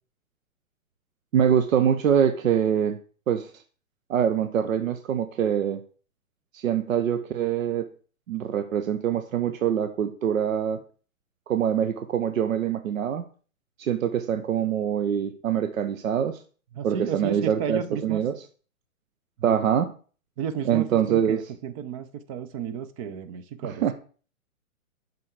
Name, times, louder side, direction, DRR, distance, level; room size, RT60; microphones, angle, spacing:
voice 1, 1.3-3.0 3.3-3.5 4.1-5.8 6.5-7.9 8.3-10.8 11.5-13.2 13.8-16.4 16.8-18.3 19.4-19.9 20.6-21.4 23.6-23.9, right 9 dB, 70° right, 8 dB, 1.1 m, -24 dB
voice 2, 16.7-18.2 19.5-19.6 20.4-23.9, right 7 dB, 25° right, 11 dB, 0.7 m, -33 dB
8.9 x 6.1 x 4.9 m, 0.39 s
hypercardioid pair, 135°, 42 cm